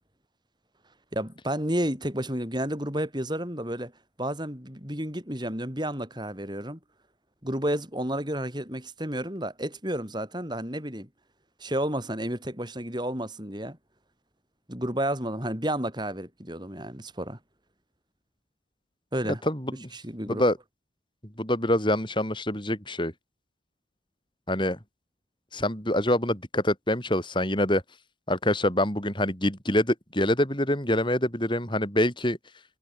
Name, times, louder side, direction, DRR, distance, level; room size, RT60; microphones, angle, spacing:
voice 1, 1.1-3.9 4.2-6.8 7.4-11.1 11.6-13.8 14.7-17.4 19.1-19.4 19.9-20.4, right 1 dB, 25° right, 8.0 m, -31 dB
voice 2, 19.4-19.9 20.3-20.6 21.4-23.1 24.5-24.8 25.5-27.8 28.3-32.4, left 1 dB, 25° left, 7.0 m, -25 dB
head